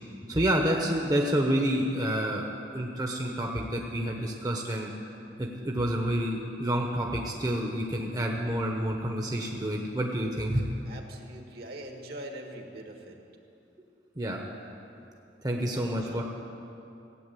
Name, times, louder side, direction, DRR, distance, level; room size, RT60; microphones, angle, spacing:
voice 1, 0.3-4.9 5.4-10.7 14.2-14.4 15.4-16.2, right 1 dB, 20° right, 0 dB, 1.0 m, -28 dB
voice 2, 10.9-13.2 15.7-16.2, right 1 dB, 60° right, 3 dB, 1.6 m, -43 dB
15.5 x 8.4 x 8.4 m, 2.7 s
head